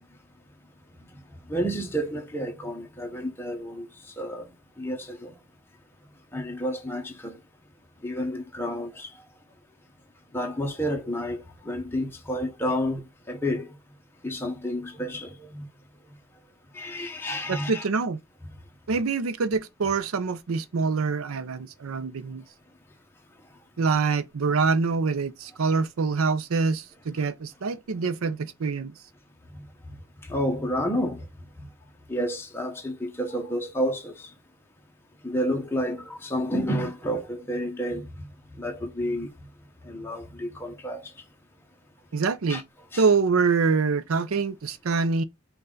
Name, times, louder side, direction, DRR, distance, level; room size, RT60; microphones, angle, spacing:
voice 1, 1.5-3.9 4.2-4.5 4.8-5.3 6.3-7.4 8.0-9.1 10.3-13.0 13.3-13.7 14.2-15.7 16.7-17.8 30.3-31.2 32.1-34.1 35.2-38.3 38.6-39.3 39.8-41.1 42.5-42.6 42.9-43.0, equal, 10° left, 0.9 m, -30 dB
voice 2, 17.5-18.2 18.9-22.4 23.8-28.9 42.1-42.6 43.0-45.2, right 4 dB, 85° right, 0.6 m, -25 dB
5.5 x 2.4 x 3.8 m
head